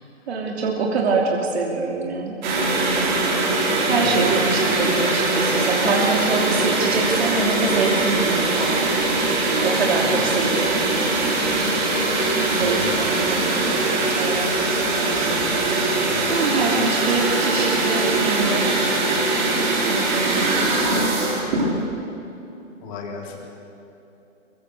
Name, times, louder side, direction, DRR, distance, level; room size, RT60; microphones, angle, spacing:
voice 1, 0.3-2.4 3.9-8.8 9.5-10.8 12.5-15.2 16.3-18.8 19.6-21.3, right 3 dB, 55° right, 0 dB, 3.2 m, -25 dB
sound 1, 2.4-21.8, right 2 dB, 35° right, 4.4 m, -21 dB
voice 2, 4.0-4.3 10.0-10.3 12.6-13.3 16.1-16.3 16.6-16.8 22.8-23.4, left 5 dB, 25° left, -1 dB, 4.0 m, -36 dB
23.5 x 23.0 x 6.7 m, 2.9 s
hypercardioid pair, 160°, 39 cm